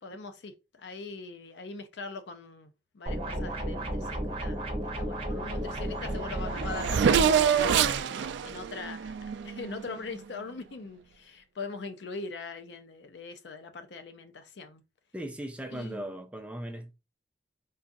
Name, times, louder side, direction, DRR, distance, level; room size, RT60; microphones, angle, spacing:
voice 1, 0.0-4.6 4.9-8.0 8.4-14.8 15.7-16.1, left 4 dB, 75° left, 0.5 m, -42 dB
sound 1, 3.1-7.4, right 1 dB, 30° right, 0.9 m, -33 dB
Race car auto racing / Accelerating revving vroom, 5.7-5.8 6.0-10.0, right 7 dB, 80° right, 0.3 m, -26 dB
voice 2, 15.1-16.9, right 1 dB, 5° right, 0.4 m, -38 dB
3.9 x 2.4 x 2.5 m
head